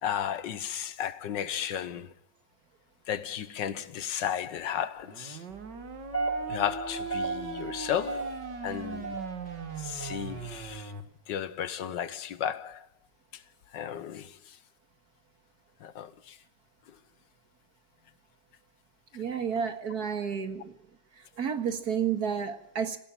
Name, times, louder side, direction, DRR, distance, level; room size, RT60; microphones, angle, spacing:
voice 1, 0.0-2.1 3.1-5.4 6.5-9.2 9.8-10.9 11.3-12.9 13.3-13.4 13.7-14.6 15.8-16.4, left 9 dB, 90° left, 1.7 m, -34 dB
sound 1, 5.0-11.0, right 5 dB, 75° right, 2.4 m, -40 dB
sound 2, 5.9-10.8, right 3 dB, 25° left, 2.0 m, -36 dB
voice 2, 19.1-20.7 21.4-23.0, right 7 dB, 60° right, 2.2 m, -31 dB
18.5 x 15.5 x 8.8 m
omnidirectional pair, 1.9 m